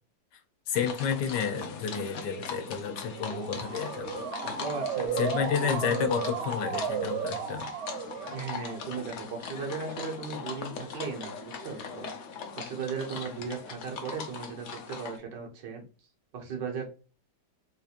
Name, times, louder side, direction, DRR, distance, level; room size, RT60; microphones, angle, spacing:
voice 1, 0.7-4.3 5.2-7.7, left 7 dB, 80° left, 1.3 m, -31 dB
sound 1, 0.7-15.2, left 5 dB, 65° left, 0.7 m, -40 dB
Motor vehicle (road) / Siren, 3.1-9.0, right 7 dB, 65° right, 1.2 m, -35 dB
voice 2, 4.6-6.1 8.3-12.1 12.5-15.8 16.3-16.9, right 5 dB, 85° right, 1.7 m, -37 dB
3.8 x 2.5 x 2.8 m
omnidirectional pair, 1.9 m